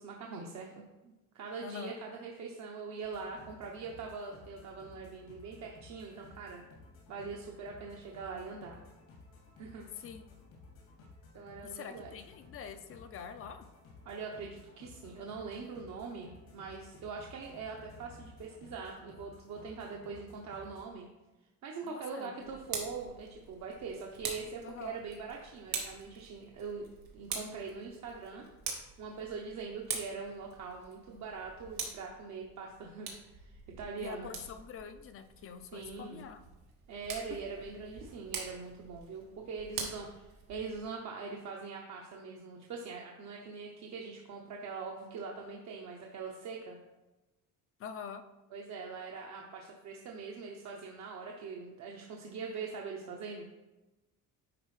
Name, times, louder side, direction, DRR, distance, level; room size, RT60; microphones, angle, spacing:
voice 1, 0.0-6.6 7.1-8.8 9.6-9.9 11.3-12.1 14.0-21.1 21.6-26.9 27.1-28.5 29.0-34.3 35.7-36.2 36.9-46.8 48.5-53.4, right 5 dB, 50° right, 0 dB, 0.8 m, -43 dB
voice 2, 1.6-2.0 10.0-10.3 11.6-13.7 21.8-22.5 24.6-25.0 34.0-36.5 47.8-48.2, left 7 dB, 40° left, 8 dB, 0.5 m, -45 dB
sound 1, 3.0-20.9, left 3 dB, 90° left, 2.4 m, -56 dB
Tick, 22.4-40.8, right 5 dB, 85° right, 1.5 m, -45 dB
9.9 x 4.1 x 3.2 m, 1.0 s
cardioid pair, 165°, 36 cm